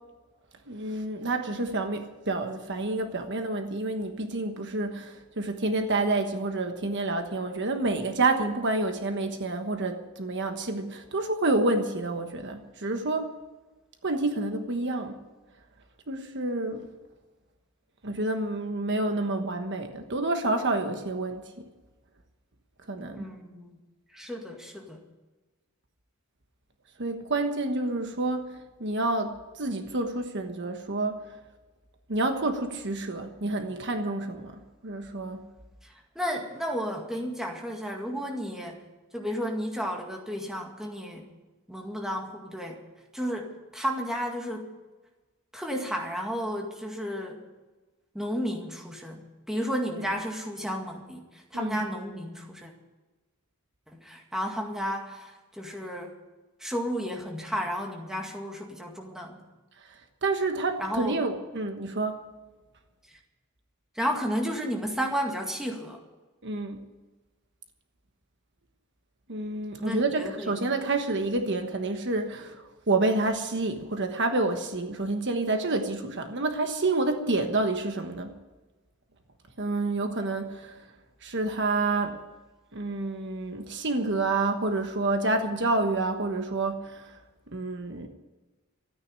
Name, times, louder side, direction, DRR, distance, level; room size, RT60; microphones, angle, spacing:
voice 1, 0.7-13.3 14.0-15.2 16.1-16.9 18.0-21.4 22.9-23.3 27.0-28.4 28.8-31.2 32.1-35.4 51.5-51.8 60.2-62.2 66.4-66.8 69.3-78.3 79.6-80.8 81.2-82.2 82.7-87.1 87.5-88.1, right 2 dB, 55° right, 6 dB, 1.3 m, -28 dB
voice 2, 23.1-23.7 24.1-25.0 35.8-38.8 39.1-41.3 41.7-42.8 43.1-44.7 45.5-47.4 48.1-52.7 53.9-56.2 56.6-59.4 60.8-61.2 63.1-63.2 64.0-66.0 69.8-70.5, equal, ahead, 1 dB, 2.0 m, -33 dB
13.5 x 9.6 x 9.7 m, 1.2 s
head